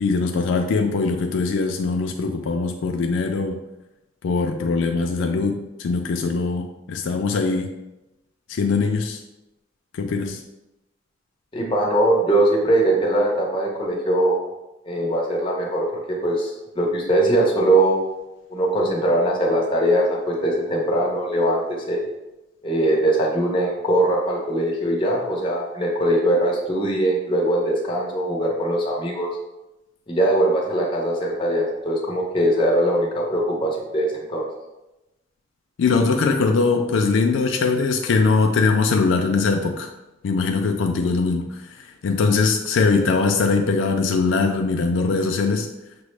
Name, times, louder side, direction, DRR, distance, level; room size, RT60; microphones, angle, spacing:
voice 1, 0.0-3.6 4.2-7.7 8.5-9.2 9.9-10.4 35.8-39.9 40.2-45.7, left 4 dB, 80° left, 3 dB, 0.4 m, -21 dB
voice 2, 11.5-14.4 14.9-18.0 18.5-22.0 22.6-29.3 30.1-34.4, right 1 dB, 25° left, -2 dB, 0.8 m, -21 dB
5.9 x 2.0 x 3.2 m, 0.98 s
head